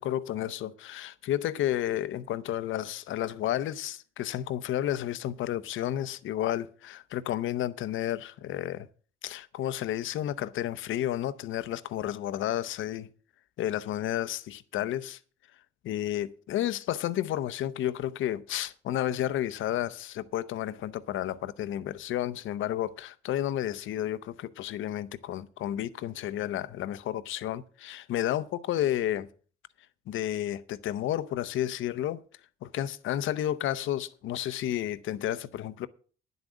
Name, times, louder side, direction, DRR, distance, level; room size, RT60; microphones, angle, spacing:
voice 1, 0.0-8.9 9.2-13.1 13.6-15.2 15.8-29.3 30.1-32.2 32.6-35.9, left 12 dB, 80° left, 0.8 m, -31 dB
10.5 x 8.1 x 6.2 m
cardioid pair, 90°, 20 cm